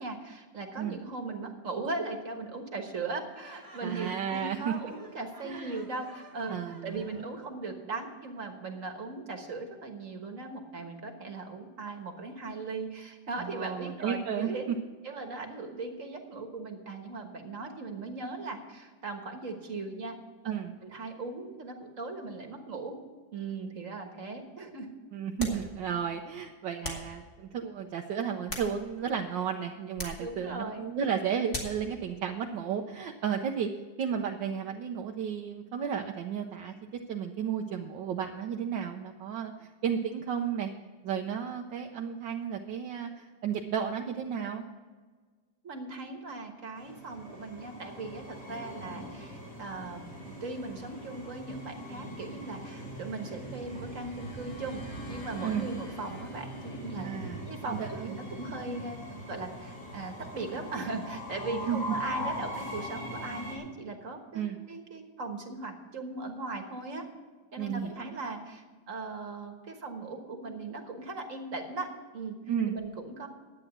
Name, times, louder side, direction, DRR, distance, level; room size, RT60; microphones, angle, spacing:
voice 1, 0.0-14.7 15.0-20.2 20.4-20.5 20.8-23.0 23.3-24.9 30.2-30.9 45.6-54.8 55.1-57.1 57.5-59.0 59.3-67.0 67.5-72.4 72.7-73.3, right 3 dB, 45° right, 5 dB, 1.6 m, -38 dB
Laughter, 3.3-7.4, right 1 dB, 10° right, 1.2 m, -53 dB
voice 2, 3.8-4.7 5.4-5.8 6.5-7.1 13.4-14.5 20.5-20.7 25.1-33.7 34.0-36.7 37.1-40.7 41.0-44.6 55.4-55.7 56.9-58.1 61.7-61.8 64.3-64.6 67.6-68.1 72.5-72.8, right 8 dB, 75° right, 3 dB, 1.4 m, -33 dB
sound 1, 25.4-25.7 26.8-27.1 28.2-29.1 29.9-30.3 31.5-31.9, left 1 dB, 30° left, 2.5 m, -38 dB
Train, 46.8-63.6, equal, 60° left, 3.4 m, -41 dB
11.5 x 8.9 x 5.9 m, 1.4 s
omnidirectional pair, 2.1 m